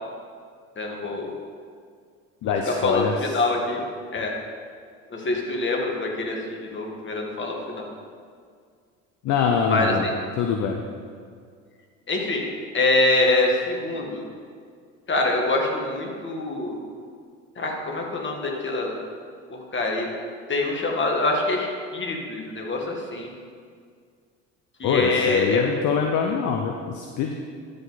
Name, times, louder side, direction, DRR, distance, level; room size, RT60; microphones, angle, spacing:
voice 1, 0.8-1.3 2.4-3.8 4.1-4.3 5.1-7.8 9.7-10.0 12.1-12.5 12.7-14.3 15.1-16.8 17.6-19.0 19.5-20.1 20.5-23.3 24.8-25.6, left 2 dB, 30° left, 0 dB, 2.0 m, -25 dB
voice 2, 2.4-3.4 9.2-10.1 10.4-10.8 24.8-27.4, left 6 dB, 50° left, 2 dB, 0.8 m, -24 dB
12.5 x 5.3 x 4.2 m, 2.1 s
hypercardioid pair, 75°, 37 cm